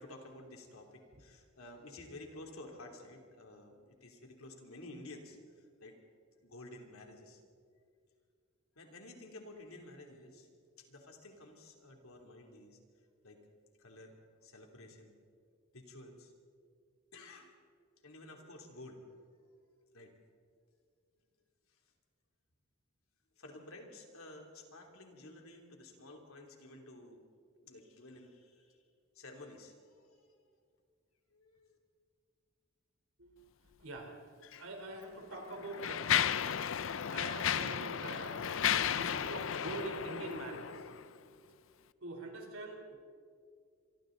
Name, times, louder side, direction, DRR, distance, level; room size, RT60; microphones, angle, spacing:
voice 1, 0.0-5.9 6.4-7.4 8.8-10.5 10.8-12.8 13.2-13.4 13.8-14.1 14.4-15.2 15.7-16.3 17.1-17.5 18.0-19.1 19.9-20.1 23.4-27.2 27.6-28.8 29.1-30.1 31.3-31.8, left 2 dB, 85° left, 2 dB, 3.2 m, -52 dB
voice 2, 33.8-34.1 34.5-36.2 37.1-38.5 38.9-40.8 42.0-43.0, right 2 dB, 90° right, 3 dB, 3.8 m, -44 dB
Mechanisms, 34.4-34.6 35.3-41.1, left 9 dB, 70° left, 0.5 m, -34 dB
27.5 x 24.5 x 4.0 m, 2.2 s
head